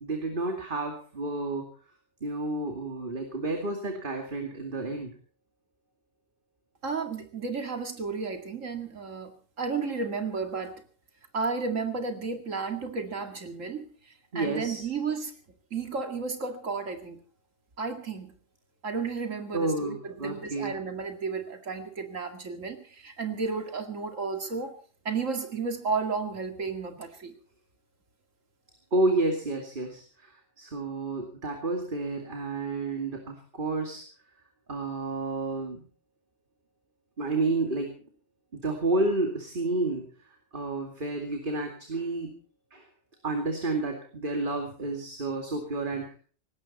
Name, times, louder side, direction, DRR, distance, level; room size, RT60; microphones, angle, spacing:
voice 1, 0.0-1.7 2.2-5.1 14.3-14.8 19.5-20.8 28.9-34.0 34.7-35.8 37.2-38.0 38.5-40.1 40.5-42.3 42.7-42.8 43.2-46.2, right 2 dB, 40° right, 3 dB, 2.6 m, -30 dB
voice 2, 6.8-10.8 11.3-13.8 14.3-15.3 15.7-17.2 17.8-18.4 18.8-24.8 25.0-27.3, right 4 dB, 85° right, 6 dB, 2.6 m, -33 dB
19.0 x 17.0 x 4.2 m, 0.42 s
omnidirectional pair, 1.3 m